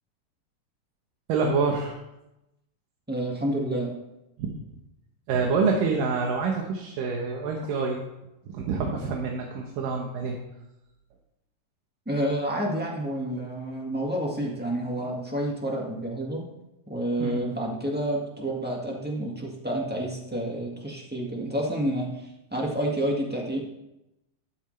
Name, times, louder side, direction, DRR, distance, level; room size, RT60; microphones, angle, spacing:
voice 1, 1.3-2.0 4.4-4.5 5.3-8.0 8.5-10.4 17.2-17.4, right 4 dB, 90° right, 1 dB, 2.8 m, -26 dB
voice 2, 3.1-3.9 12.0-16.5 16.9-23.6, right 1 dB, 10° right, -2 dB, 0.4 m, -29 dB
12.5 x 12.5 x 3.3 m, 0.91 s
omnidirectional pair, 3.8 m